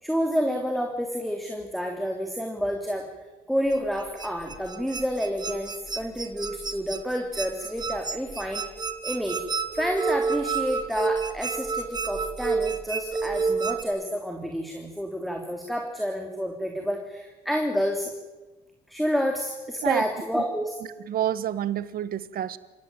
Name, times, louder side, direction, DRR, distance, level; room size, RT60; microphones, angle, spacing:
voice 1, 0.0-3.1 3.5-8.6 9.0-9.4 9.7-18.1 18.9-20.7, equal, ahead, 3 dB, 3.3 m, -29 dB
sound 1, 3.7-13.8, right 5 dB, 25° right, 2.2 m, -30 dB
voice 2, 21.1-22.6, right 11 dB, 60° right, 15 dB, 1.6 m, -28 dB
29.0 x 17.0 x 9.1 m, 1.1 s
cardioid pair, 110°, 17 cm